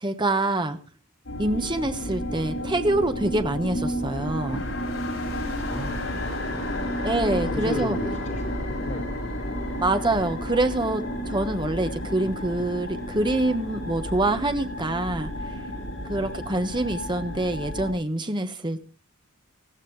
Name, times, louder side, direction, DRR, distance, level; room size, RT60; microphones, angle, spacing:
voice 1, 0.0-0.8 1.4-4.6 7.0-8.0 9.8-15.3 16.1-18.8, right 2 dB, 20° right, 7 dB, 1.2 m, -25 dB
sound 1, 1.3-17.9, equal, 65° left, 7.5 m, -31 dB
voice 2, 5.5-6.5 6.8-7.2 7.5-9.5 16.1-16.4, left 1 dB, 35° left, 1 dB, 6.4 m, -36 dB
20.0 x 15.0 x 3.3 m, 0.35 s
head